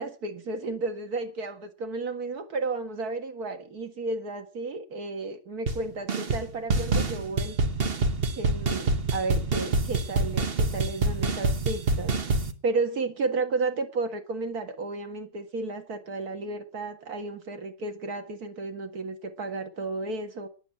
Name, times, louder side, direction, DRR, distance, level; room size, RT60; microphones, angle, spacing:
voice 1, 0.0-7.6 8.4-12.1 12.6-20.5, right 3 dB, 85° right, 2.3 m, -32 dB
sound 1, 5.7-5.8 6.1-6.4 6.7-12.5, right 3 dB, 40° right, 1.3 m, -26 dB
10.0 x 9.2 x 8.6 m
omnidirectional pair, 1.6 m